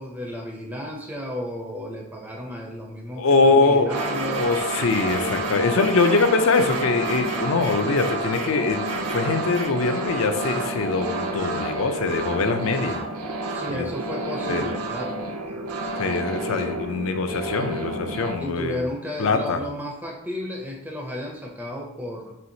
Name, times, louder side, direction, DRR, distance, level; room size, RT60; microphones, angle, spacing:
voice 1, 0.0-4.5 13.5-15.6 18.4-22.4, left 1 dB, 5° right, -1 dB, 0.4 m, -33 dB
voice 2, 3.2-3.9 4.2-8.8 9.1-13.0 13.7-13.9 14.5-14.6 16.0-18.8 19.2-19.6, left 3 dB, 65° left, 7 dB, 0.4 m, -22 dB
sound 1, 3.9-18.4, right 2 dB, 80° right, 0.5 m, -29 dB
4.4 x 3.1 x 2.7 m, 0.89 s
head